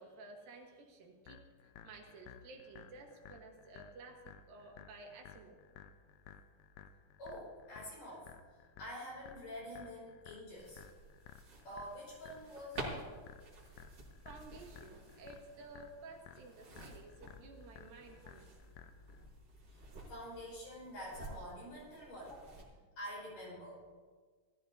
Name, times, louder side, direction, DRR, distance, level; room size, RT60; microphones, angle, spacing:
voice 1, 0.0-1.4 1.8-5.6 14.2-18.5, right 3 dB, 85° right, 1 dB, 3.2 m, -54 dB
sound 1, 1.3-19.2, left 9 dB, 80° left, 2.2 m, -57 dB
voice 2, 7.2-8.3 8.5-10.8 11.6-13.1 19.7-22.6 23.0-23.8, equal, 55° left, -5 dB, 6.3 m, -47 dB
sound 2, 10.5-22.6, right 2 dB, 40° right, 2.8 m, -51 dB
19.0 x 13.5 x 2.8 m, 1.5 s
omnidirectional pair, 4.0 m